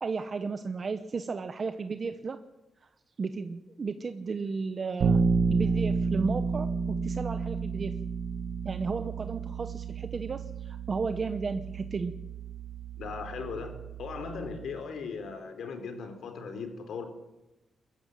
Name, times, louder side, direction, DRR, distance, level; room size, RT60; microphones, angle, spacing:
voice 1, 0.0-2.4 3.2-5.2 5.5-8.1 8.6-12.2, right 4 dB, 40° right, 9 dB, 0.9 m, -34 dB
Bass guitar, 5.0-14.8, right 4 dB, 65° right, 1.6 m, -31 dB
voice 2, 13.0-17.1, left 5 dB, 75° left, 7 dB, 3.5 m, -38 dB
22.0 x 14.0 x 9.0 m, 1.0 s
wide cardioid pair, 130°, 0 cm